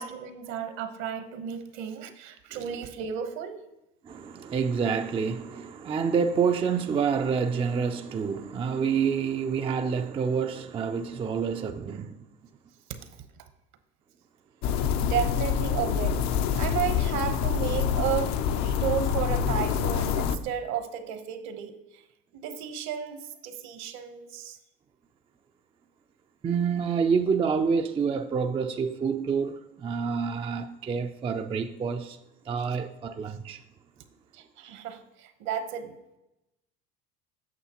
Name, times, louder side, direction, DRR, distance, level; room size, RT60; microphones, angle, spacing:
voice 1, 0.0-3.6 15.0-16.3 16.5-22.0 22.3-24.6 34.3-36.0, right 9 dB, 65° right, 1.0 m, -33 dB
voice 2, 4.0-12.2 26.4-32.2 32.5-33.6, right 6 dB, 20° right, 0.3 m, -28 dB
sound 1, 14.6-20.4, left 8 dB, 65° left, 0.6 m, -26 dB
8.5 x 6.6 x 2.9 m
supercardioid pair, 95°, 30 cm